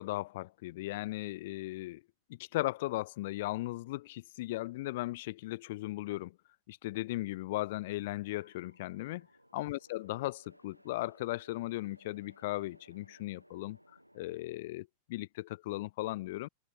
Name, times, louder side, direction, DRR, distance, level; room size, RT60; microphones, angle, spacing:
voice 1, 0.0-2.0 2.3-6.4 6.7-9.3 9.5-13.8 14.1-16.5, left 18 dB, 50° left, 1.4 m, -37 dB
sound 1, 8.3-14.7, equal, 90° right, 6.3 m, -63 dB
figure-of-eight pair, 90°, 0 cm